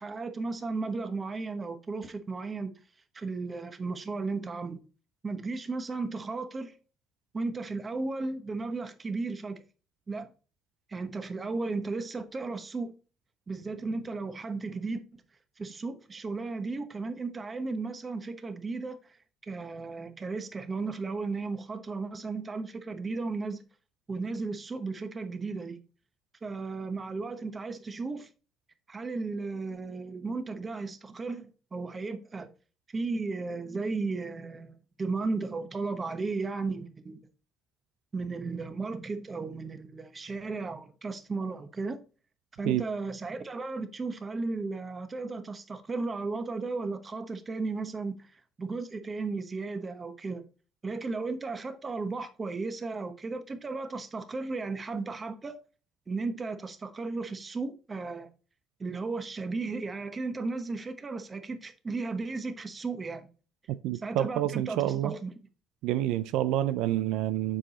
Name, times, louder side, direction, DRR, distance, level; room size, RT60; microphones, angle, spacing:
voice 1, 0.0-2.7 3.1-4.8 5.2-6.7 7.3-9.6 10.1-10.3 10.9-12.9 13.5-15.2 15.6-19.2 19.4-23.6 24.1-25.8 26.4-28.3 28.9-32.5 32.9-37.2 38.1-42.0 42.6-50.4 50.8-55.6 56.1-58.3 58.8-63.3 63.9-65.3, right 3 dB, 25° right, 1.0 m, -35 dB
voice 2, 63.7-65.1 65.8-67.6, right 13 dB, 85° right, 0.4 m, -28 dB
7.6 x 4.7 x 4.1 m
cardioid pair, 120°, 0 cm